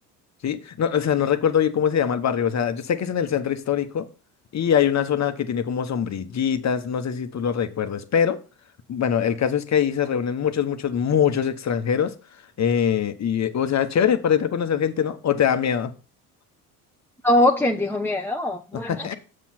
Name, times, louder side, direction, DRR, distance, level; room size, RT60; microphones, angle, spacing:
voice 1, 0.4-4.1 4.5-8.4 8.9-12.1 12.6-15.9 18.7-19.1, left 8 dB, 35° left, 1.2 m, -23 dB
voice 2, 17.2-19.1, left 1 dB, 5° left, 0.9 m, -22 dB
7.4 x 7.4 x 4.4 m
hypercardioid pair, 65°, 44 cm